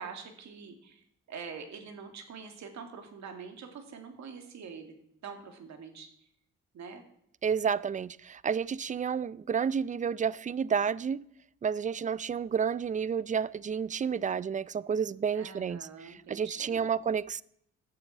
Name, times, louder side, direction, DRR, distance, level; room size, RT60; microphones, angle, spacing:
voice 1, 0.0-4.9 5.2-6.1 6.7-7.0 15.3-16.9, right 5 dB, 65° right, 2.4 m, -45 dB
voice 2, 7.4-11.2 11.6-17.4, right 7 dB, 25° right, 0.4 m, -30 dB
12.0 x 7.4 x 7.4 m
cardioid pair, 90°, 30 cm